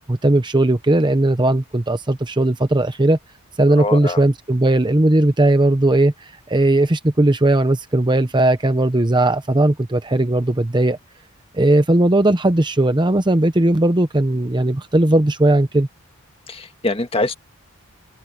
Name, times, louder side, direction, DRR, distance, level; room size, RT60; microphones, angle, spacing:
voice 1, 0.1-3.2 3.6-11.0 11.5-15.9, right 1 dB, 20° right, 0.8 m, -17 dB
voice 2, 3.8-4.2 16.5-17.4, left 2 dB, 25° left, 1.8 m, -23 dB
open air
head